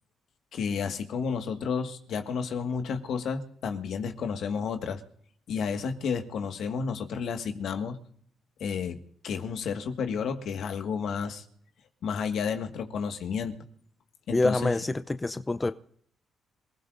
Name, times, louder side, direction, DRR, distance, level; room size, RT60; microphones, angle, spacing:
voice 1, 0.5-5.0 5.5-8.0 8.6-9.0 9.2-11.4 12.0-13.5 14.3-14.8, left 6 dB, 70° left, 6 dB, 1.7 m, -31 dB
voice 2, 14.3-15.7, left 2 dB, 20° left, 11 dB, 0.6 m, -26 dB
27.5 x 16.0 x 2.6 m, 0.64 s
cardioid pair, 90°, 0 cm